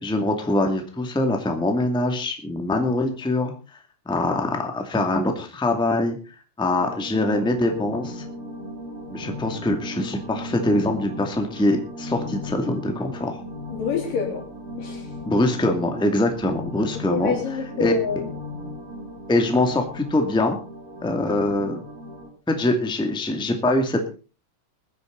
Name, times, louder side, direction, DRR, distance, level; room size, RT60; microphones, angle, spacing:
voice 1, 0.0-3.5 4.1-6.2 6.6-8.2 9.1-13.4 15.2-17.3 17.8-17.9 19.3-20.6 21.0-21.8 22.5-24.1, left 1 dB, ahead, 4 dB, 1.8 m, -23 dB
sound 1, 6.8-22.3, left 1 dB, 45° right, 4.5 m, -36 dB
voice 2, 13.7-14.5 14.8-15.1 17.1-18.3, left 7 dB, 85° left, 2 dB, 5.1 m, -27 dB
22.5 x 10.0 x 4.0 m, 0.35 s
omnidirectional pair, 3.7 m